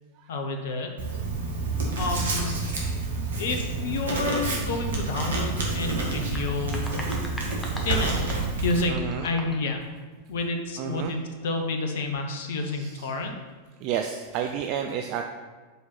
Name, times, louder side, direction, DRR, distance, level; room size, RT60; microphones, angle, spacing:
voice 1, 0.3-0.9 2.0-2.6 3.3-6.9 7.8-9.8 10.3-11.2 11.4-13.4, left 3 dB, 55° left, 4 dB, 0.8 m, -29 dB
Writing, 1.0-8.8, right 3 dB, 65° right, 1.5 m, -28 dB
sound 1, 6.2-9.7, left 1 dB, 10° left, 1.1 m, -40 dB
voice 2, 8.9-9.3 10.8-11.1 12.6-13.1 13.8-15.3, right 8 dB, 40° right, 4 dB, 0.4 m, -31 dB
5.4 x 4.7 x 5.8 m, 1.4 s
figure-of-eight pair, 90°, 0 cm